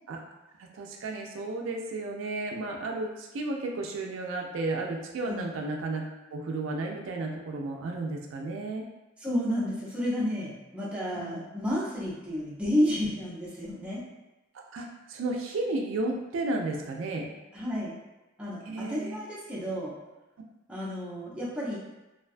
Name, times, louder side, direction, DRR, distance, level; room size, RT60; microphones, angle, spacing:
voice 1, 0.6-8.8 11.2-11.4 14.7-17.3 18.6-19.2, right 2 dB, 75° right, 1 dB, 0.3 m, -33 dB
voice 2, 9.2-14.1 17.5-18.0 18.4-19.9 20.7-21.8, equal, 5° right, -7 dB, 0.5 m, -31 dB
2.5 x 2.2 x 2.4 m, 1.0 s
head